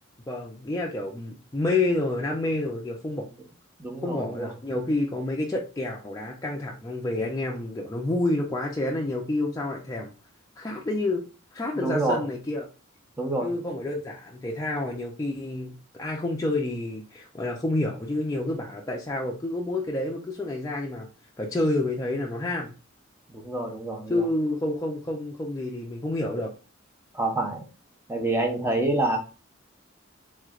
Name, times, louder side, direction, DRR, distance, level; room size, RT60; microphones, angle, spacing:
voice 1, 0.3-3.3 4.0-10.1 10.6-11.2 11.5-12.7 13.4-21.1 21.4-22.7 24.1-26.5, left 2 dB, 15° left, -2 dB, 0.4 m, -29 dB
voice 2, 3.8-4.5 11.8-12.3 13.2-13.5 23.3-24.2 27.1-27.6 28.1-29.2, right 2 dB, 10° right, 1 dB, 0.7 m, -27 dB
3.6 x 3.1 x 2.3 m, 0.33 s
head